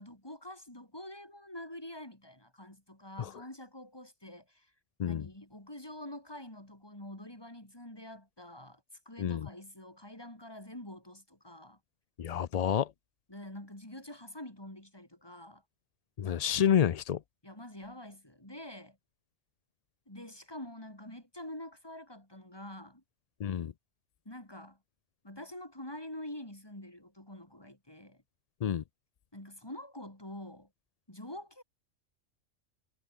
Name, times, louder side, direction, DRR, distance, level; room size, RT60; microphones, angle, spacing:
voice 1, 0.0-4.7 5.0-11.8 13.3-15.6 17.4-19.0 20.1-23.0 24.2-24.8 25.2-28.2 29.3-30.7 31.1-31.6, left 1 dB, 20° left, 4.2 m, -46 dB
voice 2, 9.2-9.5 12.2-12.9 16.2-17.2 23.4-23.7 28.6-28.8, left 9 dB, 65° left, 0.4 m, -29 dB
omnidirectional pair, 1.3 m